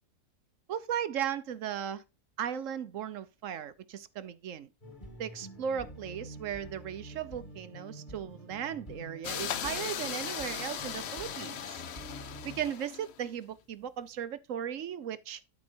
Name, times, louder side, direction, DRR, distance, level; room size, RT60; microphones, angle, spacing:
voice 1, 0.7-2.0 2.4-4.7 5.2-11.8 12.4-15.4, right 9 dB, 60° right, 0.9 m, -36 dB
sound 1, 4.8-12.7, right 1 dB, 30° left, 2.2 m, -47 dB
sound 2, 9.2-13.3, left 9 dB, 55° left, 0.7 m, -38 dB
12.0 x 4.5 x 4.4 m
omnidirectional pair, 1.7 m